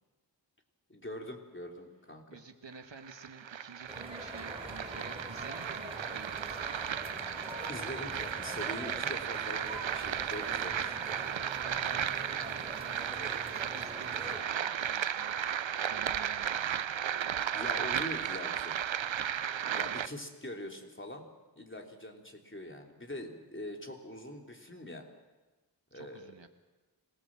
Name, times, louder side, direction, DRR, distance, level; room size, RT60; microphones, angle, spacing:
voice 1, 0.9-2.4 7.7-11.3 17.5-18.8 19.6-21.3 21.6-25.0 25.9-26.3, left 1 dB, 25° left, 2 dB, 3.3 m, -43 dB
voice 2, 2.3-6.7 11.4-15.4 15.9-16.7 19.7-20.0 25.9-26.5, right 4 dB, 70° right, 7 dB, 1.7 m, -50 dB
sound 1, 2.7-20.1, right 9 dB, 90° right, 0.7 m, -35 dB
sound 2, 3.9-14.4, equal, 15° right, 3.4 m, -44 dB
Thump thud, 4.5-5.2 6.3-6.8 8.0-8.6 9.8-10.2 11.7-12.0, right 2 dB, 40° right, 4.3 m, -56 dB
25.5 x 17.5 x 7.5 m, 1.2 s
wide cardioid pair, 50°, 45 cm